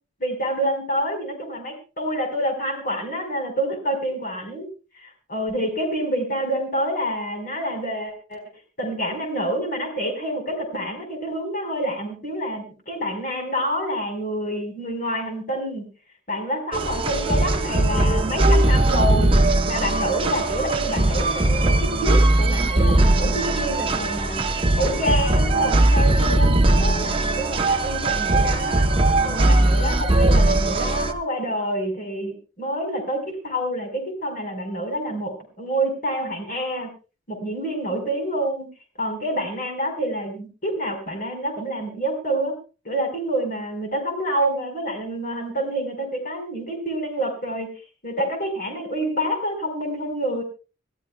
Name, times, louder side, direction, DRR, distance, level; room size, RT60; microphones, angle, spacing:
voice 1, 0.2-4.7 5.0-8.4 8.8-15.8 16.3-19.4 19.7-24.4 24.8-28.9 29.2-36.9 37.3-38.7 39.0-42.5 42.8-47.7 48.0-50.4, right 1 dB, 45° left, 3 dB, 4.5 m, -27 dB
sound 1, 16.7-31.1, right 2 dB, 25° right, 0.8 m, -19 dB
27.0 x 13.5 x 2.2 m, 0.34 s
head